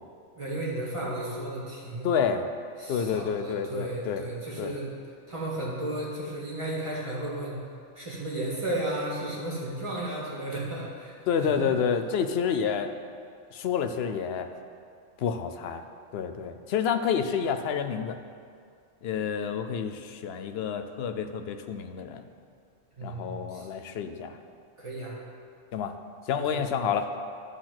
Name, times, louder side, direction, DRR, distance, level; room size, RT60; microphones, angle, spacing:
voice 1, 0.4-2.1 2.8-4.9 5.3-7.6 8.0-11.1 11.4-11.7 23.0-23.7 24.8-25.2 26.4-26.7, right 1 dB, 25° right, -6 dB, 1.9 m, -34 dB
voice 2, 2.0-2.5 2.9-4.2 4.6-4.7 11.3-12.9 13.5-14.5 15.2-15.8 16.1-18.2 19.0-22.2 23.0-24.4 25.7-25.9 26.3-27.1, left 7 dB, 60° left, 8 dB, 0.7 m, -29 dB
12.0 x 4.2 x 6.0 m, 2.3 s
omnidirectional pair, 1.4 m